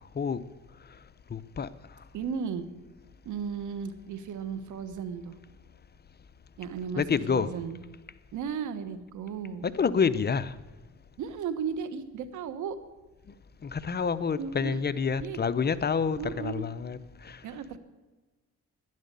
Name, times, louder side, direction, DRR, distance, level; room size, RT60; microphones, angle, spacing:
voice 1, 1.3-1.7 7.0-7.5 9.6-10.6 13.6-17.4, left 6 dB, 35° left, 0.7 m, -28 dB
voice 2, 2.1-2.7 3.2-5.4 6.6-7.0 7.3-7.8 8.3-9.7 11.2-12.8 14.4-14.8 15.2-15.4 16.2-16.6 17.4-17.8, right 7 dB, 75° right, 1.5 m, -35 dB
11.5 x 11.0 x 9.6 m
cardioid pair, 90°, 30 cm